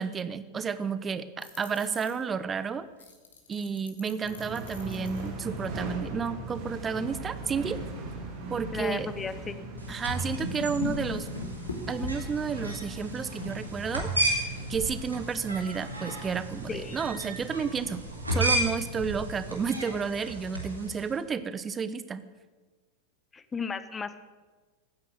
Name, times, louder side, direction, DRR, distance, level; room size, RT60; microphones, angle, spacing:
voice 1, 0.0-2.8 3.5-7.8 8.5-9.1 9.9-11.3 11.9-14.1 14.7-18.0 18.3-22.2, right 6 dB, 20° right, 14 dB, 0.9 m, -31 dB
sound 1, 1.4-2.2 3.0-5.3 6.9-7.0 7.5-7.6 8.6-8.7 9.1-9.2 9.9-13.6, left 3 dB, 70° left, 2.8 m, -39 dB
sound 2, 4.2-20.0, right 2 dB, 50° right, 3.7 m, -40 dB
voice 2, 8.7-9.6 16.7-17.0 23.3-24.2, left 5 dB, 15° left, 13 dB, 1.0 m, -34 dB
sound 3, 9.8-21.1, right 1 dB, 85° right, 3.1 m, -34 dB
15.5 x 9.8 x 8.4 m, 1.3 s
figure-of-eight pair, 90°, 0 cm